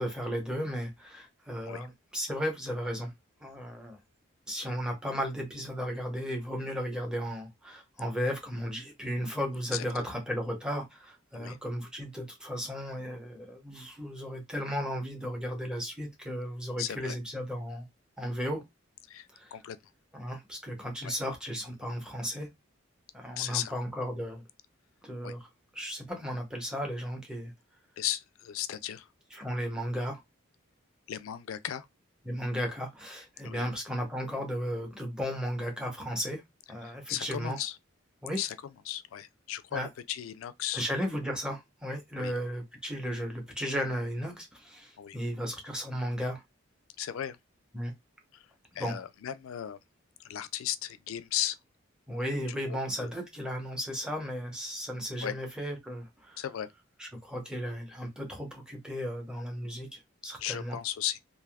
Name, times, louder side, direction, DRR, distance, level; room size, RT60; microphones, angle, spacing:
voice 1, 0.0-3.1 3.4-4.0 4.5-17.9 18.2-18.6 19.3-19.6 20.1-22.5 23.1-24.4 25.0-25.5 25.7-27.5 29.3-30.2 32.2-36.4 36.7-37.6 38.2-38.4 39.7-39.9 40.7-46.4 47.7-47.9 48.7-49.0 52.1-56.4 57.0-60.8, equal, 5° right, 0.8 m, -35 dB
voice 2, 16.8-17.2 19.1-19.8 21.0-21.1 23.4-23.7 25.2-25.3 28.0-29.1 31.1-31.9 33.4-33.7 36.8-37.8 38.4-38.6 38.9-40.8 42.2-42.3 45.0-45.2 47.0-47.4 48.3-48.5 48.7-49.8 50.2-51.6 52.5-53.1 55.2-55.4 56.4-56.7 60.4-61.2, left 11 dB, 80° left, 0.3 m, -36 dB
3.4 x 2.5 x 2.2 m
head